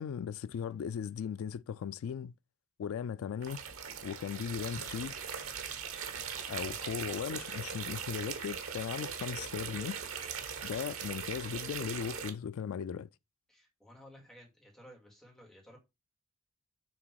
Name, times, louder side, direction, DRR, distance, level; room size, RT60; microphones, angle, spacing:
voice 1, 0.0-2.3 2.8-3.6 4.0-5.1 6.5-10.0 10.6-13.1, left 7 dB, 85° left, 0.3 m, -37 dB
sound 1, 3.4-12.3, right 7 dB, 85° right, 1.2 m, -40 dB
voice 2, 13.5-15.8, equal, 5° left, 2.5 m, -55 dB
6.1 x 3.5 x 4.7 m
head